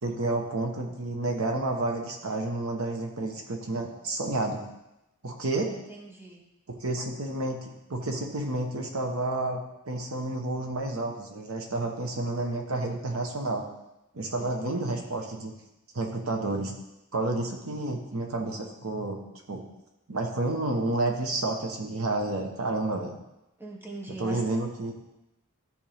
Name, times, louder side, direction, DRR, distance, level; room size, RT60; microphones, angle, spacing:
voice 1, 0.0-4.6 5.2-5.7 6.7-13.7 14.1-15.5 15.9-16.7 17.1-19.2 19.5-19.6 20.1-23.2 24.1-24.9, right 2 dB, 85° right, 3 dB, 1.2 m, -30 dB
voice 2, 5.7-6.4 14.4-15.1 23.6-24.6, right 2 dB, 10° right, 0 dB, 0.9 m, -42 dB
13.0 x 4.4 x 3.5 m, 0.94 s
head